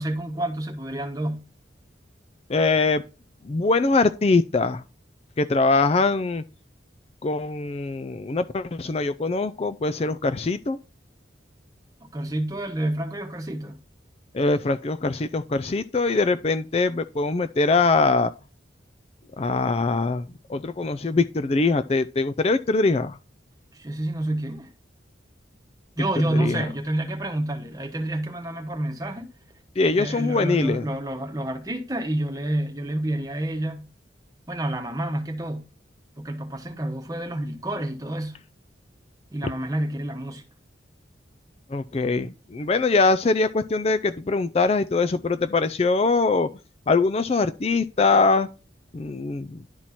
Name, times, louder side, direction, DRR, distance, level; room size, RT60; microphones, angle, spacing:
voice 1, 0.0-1.4 12.1-13.8 23.7-24.7 26.0-29.3 29.9-33.8 34.5-35.6 36.2-38.4 39.3-40.4, right 1 dB, 20° right, 1.2 m, -28 dB
voice 2, 2.5-3.0 3.4-4.8 5.4-6.4 7.2-10.8 14.3-18.3 19.4-23.2 26.3-26.6 29.8-30.8 41.7-46.5 46.9-48.5 48.9-49.6, left 3 dB, 30° left, 0.4 m, -22 dB
11.0 x 4.5 x 4.2 m
head